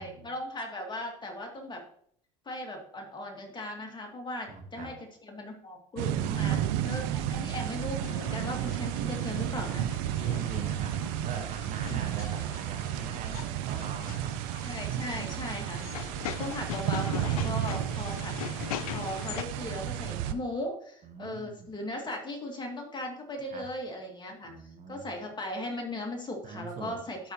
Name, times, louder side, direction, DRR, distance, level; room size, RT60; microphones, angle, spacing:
voice 1, 0.0-1.8 2.5-4.9 5.2-6.6 6.8-9.9 11.9-12.0 14.6-16.1 16.4-24.5 24.9-27.2, left 1 dB, 25° left, 1 dB, 2.4 m, -38 dB
voice 2, 4.5-5.0 6.2-6.6 7.1-7.6 10.2-14.4 17.8-17.9 21.0-21.7 23.5-23.7 24.4-25.1 26.4-27.0, right 5 dB, 45° right, 5 dB, 1.5 m, -42 dB
sound 1, 6.0-20.3, right 12 dB, 70° right, 0.6 m, -32 dB
sound 2, 8.0-19.4, left 11 dB, 85° left, 0.5 m, -41 dB
12.0 x 4.6 x 3.0 m, 0.64 s
hypercardioid pair, 80°, 18 cm